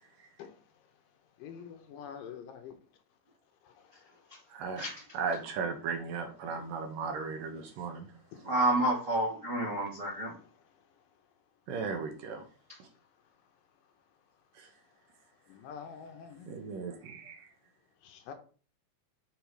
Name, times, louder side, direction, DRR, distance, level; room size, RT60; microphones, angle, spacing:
voice 1, 1.4-2.7 15.5-16.6 18.1-18.3, left 7 dB, 80° left, 2.3 m, -45 dB
voice 2, 4.5-4.9 5.1-8.1 11.7-12.4 12.8-12.9 14.6-14.7 16.5-17.5, right 5 dB, 75° right, 2.5 m, -36 dB
voice 3, 8.4-10.3, right 1 dB, 55° right, 0.8 m, -29 dB
7.0 x 3.8 x 4.7 m
omnidirectional pair, 4.2 m